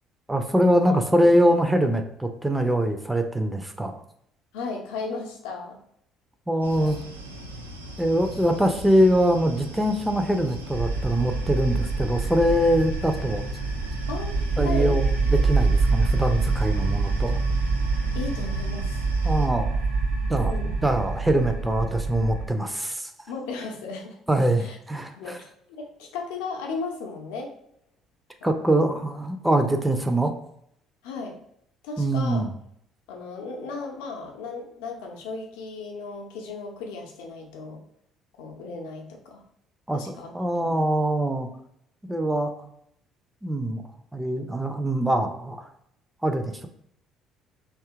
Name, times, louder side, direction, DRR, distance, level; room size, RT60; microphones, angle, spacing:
voice 1, 0.3-3.9 6.5-7.0 8.0-13.4 14.6-17.4 19.2-19.7 20.3-20.5 20.8-23.1 24.3-25.4 28.4-30.3 32.0-32.5 39.9-41.5 42.0-42.5 43.4-43.8 44.1-45.7 46.2-46.7, right 1 dB, 10° right, 6 dB, 0.4 m, -23 dB
voice 2, 4.5-5.8 6.7-6.9 14.1-14.9 18.1-19.0 20.3-20.8 23.3-24.2 24.6-24.8 25.2-27.5 28.4-28.8 31.0-31.4 31.8-32.5 33.1-37.8 38.4-39.4 39.9-40.3 40.6-40.9, left 4 dB, 65° left, 1 dB, 0.6 m, -35 dB
sound 1, 6.6-19.5, right 2 dB, 85° right, 0.3 m, -38 dB
sound 2, 10.7-22.5, right 3 dB, 65° right, 0.9 m, -25 dB
2.7 x 2.3 x 3.5 m, 0.71 s
figure-of-eight pair, 50°, 0 cm